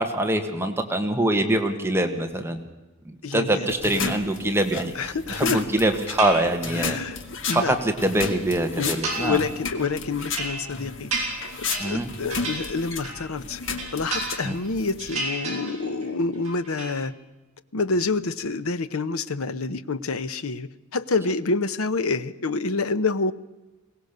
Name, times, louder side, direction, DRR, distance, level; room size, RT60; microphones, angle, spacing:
voice 1, 0.0-2.6 3.1-7.0 7.5-9.4 11.8-12.1 14.4-14.5, right 1 dB, 10° right, 5 dB, 1.5 m, -24 dB
voice 2, 3.2-4.1 4.9-5.6 6.7-7.2 7.5-7.8 8.8-11.1 11.6-13.6 13.9-17.1 17.7-23.3, left 3 dB, 80° left, 13 dB, 0.9 m, -27 dB
sound 1, 3.7-15.2, left 5 dB, 60° left, 1.7 m, -34 dB
sound 2, 6.2-6.9 7.2-8.3 8.8-9.5 9.8-13.3 13.6-14.7 15.0-16.1 16.3-17.0, right 2 dB, 30° right, 7.5 m, -33 dB
22.0 x 18.0 x 6.7 m, 1.1 s
head